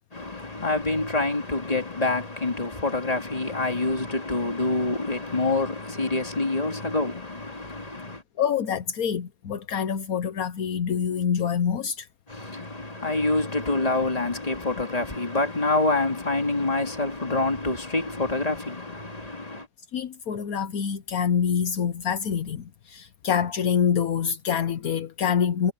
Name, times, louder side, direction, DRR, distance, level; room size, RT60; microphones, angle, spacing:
voice 1, 0.1-8.2 12.3-19.7, left 2 dB, 25° left, 2.8 m, -26 dB
voice 2, 8.4-12.1 19.9-25.7, left 7 dB, 75° left, 1.4 m, -26 dB
omnidirectional pair, 1.6 m